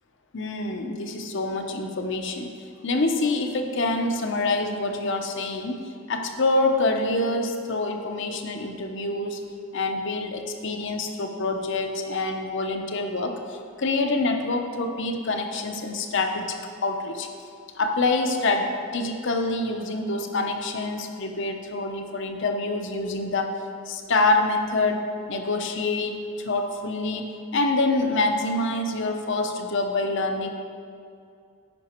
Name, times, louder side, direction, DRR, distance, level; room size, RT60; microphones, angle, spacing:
voice 1, 0.3-2.5 2.8-5.8 6.1-9.4 9.7-16.6 16.8-17.3 17.7-23.5 23.9-30.5, left 2 dB, 65° left, 4 dB, 0.8 m, -26 dB
10.5 x 5.0 x 4.4 m, 2.4 s
head